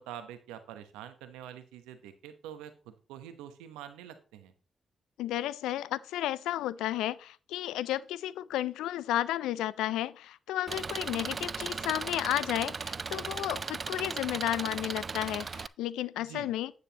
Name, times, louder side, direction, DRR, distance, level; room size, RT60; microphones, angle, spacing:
voice 1, 0.0-4.5 16.2-16.5, right 10 dB, 90° right, 0.9 m, -46 dB
voice 2, 5.2-16.7, left 13 dB, 85° left, 0.3 m, -33 dB
Engine, 10.7-15.7, right 5 dB, 50° right, 0.4 m, -37 dB
9.5 x 9.4 x 2.9 m
supercardioid pair, 45°, 0 cm